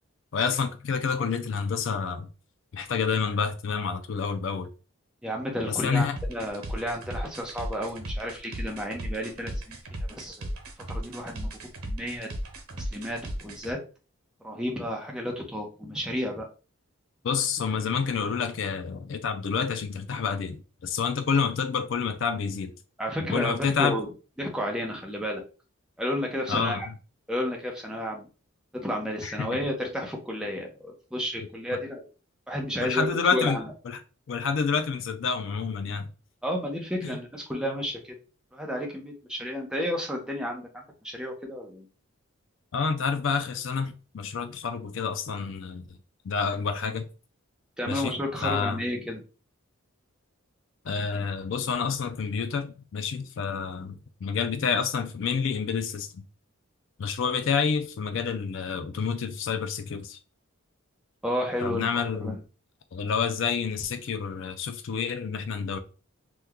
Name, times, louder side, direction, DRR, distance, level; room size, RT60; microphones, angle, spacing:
voice 1, 0.3-2.3 2.7-4.7 5.7-6.2 17.2-22.7 23.3-24.0 26.5-26.9 29.2-29.6 32.8-34.0 34.3-36.1 37.0-37.2 42.7-45.8 46.2-47.1 47.9-48.2 48.4-48.8 50.8-56.2 57.0-60.2 61.6-62.4 62.9-65.8, left 5 dB, 55° left, 0.4 m, -28 dB
voice 2, 5.2-10.5 10.9-11.5 11.8-12.3 12.7-13.8 14.4-16.5 23.0-24.1 24.4-25.4 26.0-26.9 27.3-28.3 28.8-32.1 32.5-33.6 36.4-38.1 38.5-41.9 47.8-49.2 61.2-61.9 62.2-62.4, equal, 5° right, 0.6 m, -32 dB
sound 1, 6.2-13.7, equal, 90° right, 1.0 m, -36 dB
3.0 x 2.2 x 3.5 m
head